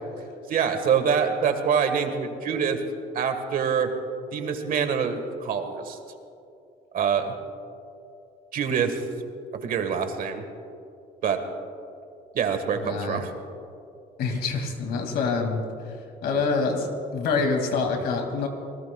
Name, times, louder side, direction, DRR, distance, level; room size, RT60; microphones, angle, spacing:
voice 1, 0.5-2.8 3.1-3.9 4.3-6.0 6.9-7.3 8.5-9.0 9.6-10.4 11.2-11.4 12.3-13.3 14.5-14.6, right 7 dB, 55° right, 7 dB, 1.5 m, -25 dB
voice 2, 12.8-13.2 14.2-15.9 16.2-18.5, left 4 dB, 70° left, 4 dB, 2.2 m, -26 dB
26.5 x 19.0 x 2.3 m, 2.6 s
cardioid pair, 110°, 17 cm